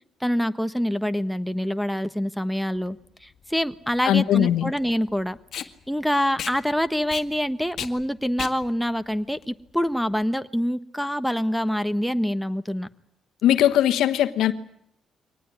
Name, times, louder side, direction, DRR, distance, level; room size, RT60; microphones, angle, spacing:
voice 1, 0.2-5.4 5.9-12.9, equal, ahead, 1.3 m, -26 dB
Packing tape duct tape, 2.8-10.2, left 9 dB, 65° left, 1.8 m, -38 dB
voice 2, 4.0-4.7 13.4-14.5, left 11 dB, 85° left, 1.3 m, -20 dB
24.0 x 19.0 x 9.5 m
cardioid pair, 90°, 0 cm